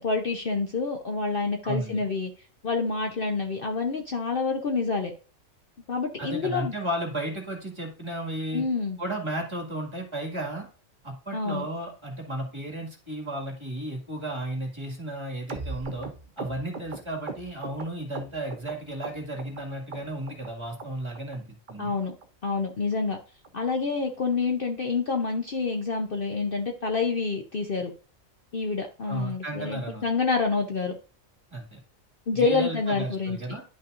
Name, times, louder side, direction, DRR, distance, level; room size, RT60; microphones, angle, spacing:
voice 1, 0.0-2.3 2.6-5.1 5.9-6.7 8.5-9.0 11.3-11.7 21.8-22.1 22.4-23.2 23.5-27.9 28.5-30.9 32.3-33.4, left 4 dB, 50° left, 3 dB, 0.8 m, -27 dB
voice 2, 1.6-2.0 6.2-8.6 9.0-10.7 11.0-16.1 16.4-21.9 29.1-30.0 31.5-31.8 32.3-33.6, right 1 dB, 20° right, 1 dB, 1.9 m, -34 dB
sound 1, 15.5-18.7 19.0-19.6 19.9-20.5 20.8-20.9 21.1-21.4 21.7-21.8 22.0-22.2 22.6-22.7 22.9-23.1 23.4-23.5 23.8-24.0 24.3-24.4 24.7-24.9 25.2-25.3, right 4 dB, 45° right, 0.9 m, -38 dB
11.0 x 5.7 x 2.5 m, 0.37 s
omnidirectional pair, 1.4 m